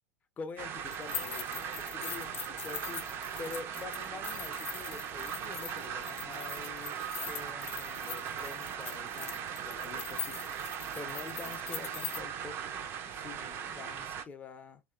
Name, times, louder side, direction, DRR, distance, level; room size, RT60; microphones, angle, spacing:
voice 1, 0.4-12.6 13.1-14.8, left 4 dB, 20° left, 0.5 m, -46 dB
sound 1, 0.6-14.2, right 8 dB, 35° right, 0.4 m, -39 dB
sound 2, 0.9-12.2, left 7 dB, 70° left, 0.6 m, -42 dB
2.8 x 2.1 x 2.2 m
figure-of-eight pair, 90°, 7 cm